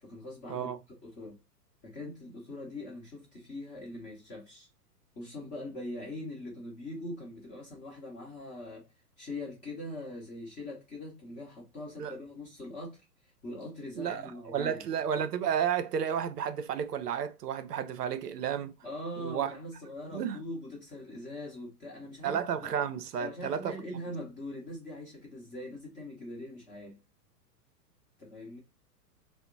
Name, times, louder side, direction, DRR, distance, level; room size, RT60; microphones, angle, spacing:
voice 1, 0.0-0.7 1.0-1.4 1.8-4.7 5.1-8.8 9.2-13.0 13.4-14.8 18.8-22.7 23.2-27.0 28.2-28.6, left 1 dB, 15° left, 0.7 m, -42 dB
voice 2, 14.0-18.7 19.2-19.6 20.1-20.4 22.2-23.8, right 8 dB, 75° right, 0.5 m, -32 dB
2.8 x 2.1 x 2.3 m
figure-of-eight pair, 100°, 48 cm